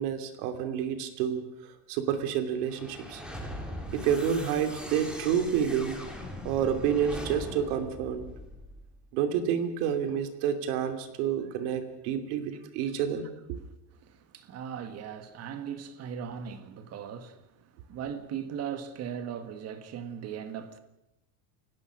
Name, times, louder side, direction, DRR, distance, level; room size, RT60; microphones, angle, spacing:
voice 1, 0.0-1.4 1.9-3.2 3.9-6.0 6.4-8.3 9.1-13.6, right 8 dB, 80° right, 3.1 m, -29 dB
sound 1, 2.6-8.9, equal, ahead, 3.1 m, -40 dB
voice 2, 14.0-20.8, right 8 dB, 35° right, 1.7 m, -39 dB
29.0 x 17.5 x 6.3 m
cardioid pair, 180°, 45 cm